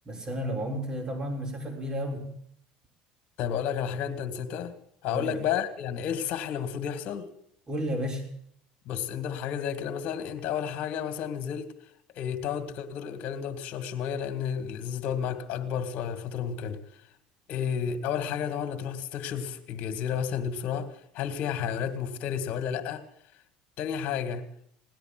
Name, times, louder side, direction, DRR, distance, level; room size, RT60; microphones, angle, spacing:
voice 1, 0.1-2.3 5.1-5.4 7.7-8.2, equal, 25° right, 3 dB, 3.7 m, -32 dB
voice 2, 3.4-4.7 5.0-7.3 8.9-11.7 12.1-16.8 17.5-23.0 23.8-24.4, left 8 dB, 60° left, 8 dB, 2.1 m, -31 dB
18.0 x 10.5 x 7.7 m, 0.69 s
supercardioid pair, 100°, 3 cm